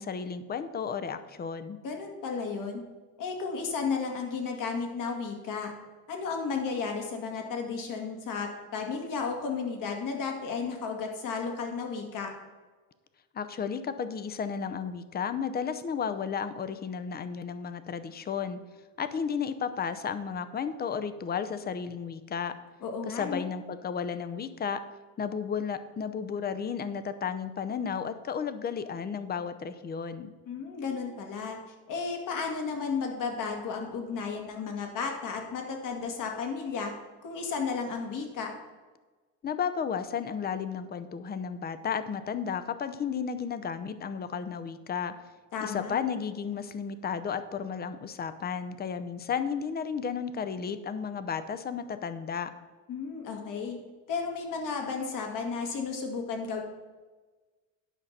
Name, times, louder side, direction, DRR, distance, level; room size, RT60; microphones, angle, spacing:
voice 1, 0.0-1.8 13.3-18.6 19.0-22.5 23.1-24.8 25.2-30.3 39.4-45.1 45.6-52.5, left 6 dB, 25° left, 11 dB, 0.6 m, -33 dB
voice 2, 1.8-2.8 3.2-5.7 6.1-12.3 22.8-23.4 30.5-31.6 31.9-36.9 37.2-38.5 45.5-46.0 52.9-53.8 54.1-56.6, left 5 dB, 65° left, 3 dB, 2.2 m, -33 dB
10.0 x 5.7 x 6.6 m, 1.3 s
cardioid pair, 135°, 35 cm